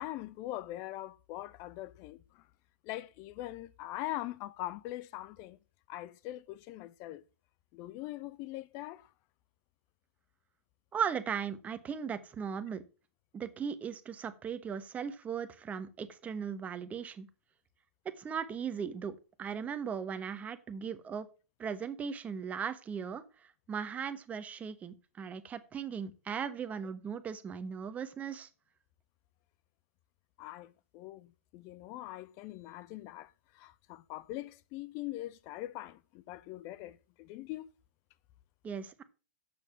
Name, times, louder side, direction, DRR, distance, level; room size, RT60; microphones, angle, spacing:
voice 1, 0.0-2.4 2.8-5.6 5.9-7.2 7.7-9.1 30.4-37.7, left 15 dB, 40° left, 0.5 m, -42 dB
voice 2, 10.9-12.8 13.3-17.3 18.2-21.3 21.6-23.2 23.7-28.5 38.6-39.0, right 7 dB, 20° right, 1.2 m, -38 dB
7.8 x 6.4 x 7.5 m
hypercardioid pair, 125°, 7 cm